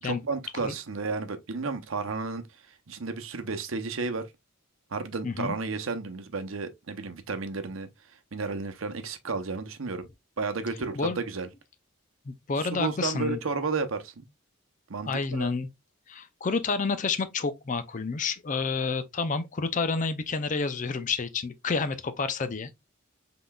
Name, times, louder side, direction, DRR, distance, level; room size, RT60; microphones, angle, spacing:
voice 1, 0.0-2.4 2.9-4.2 4.9-7.9 8.3-10.1 10.4-11.5 12.6-14.3 14.9-15.5, right 4 dB, 80° right, 0.8 m, -32 dB
voice 2, 5.2-5.6 10.9-11.2 12.3-13.4 15.1-15.7 16.1-22.7, left 4 dB, 40° left, 0.5 m, -29 dB
5.7 x 3.8 x 2.3 m
head